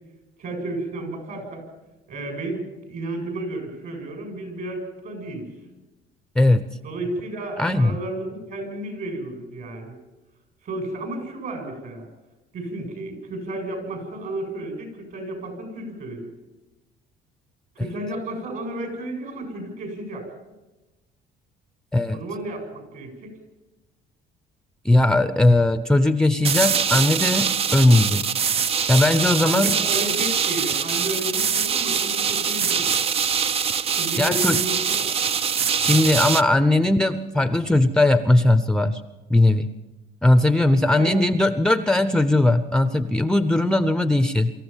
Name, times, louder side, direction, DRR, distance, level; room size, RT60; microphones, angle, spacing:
voice 1, 0.4-1.6 2.1-5.5 6.8-10.0 10.6-12.1 12.5-16.3 17.7-20.3 22.1-23.4 29.4-32.9 33.9-35.1 40.9-41.2, right 1 dB, 55° right, 4 dB, 7.9 m, -32 dB
voice 2, 6.4-6.7 7.6-7.9 21.9-22.2 24.8-28.2 28.9-29.8 34.2-34.6 35.7-39.0 39.3-39.7 40.2-44.5, left 2 dB, 5° left, 11 dB, 0.7 m, -19 dB
sound 1, 26.4-36.4, right 7 dB, 35° right, 0.6 m, -23 dB
24.5 x 14.5 x 7.3 m, 1.1 s
cardioid pair, 130°, 17 cm